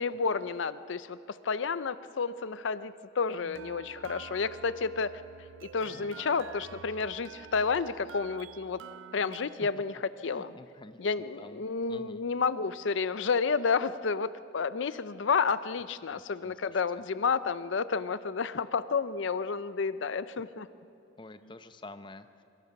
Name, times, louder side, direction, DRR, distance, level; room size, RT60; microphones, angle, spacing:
voice 1, 0.0-5.2 5.6-8.8 9.1-10.6 11.0-20.7, left 5 dB, 75° left, 14 dB, 0.5 m, -31 dB
sound 1, 3.3-9.6, right 6 dB, 75° right, 0.5 m, -48 dB
voice 2, 5.9-6.4 9.4-9.7 10.2-12.2 16.1-16.8 21.2-22.4, left 2 dB, 25° left, 11 dB, 0.7 m, -49 dB
26.0 x 24.5 x 5.9 m, 2.8 s
head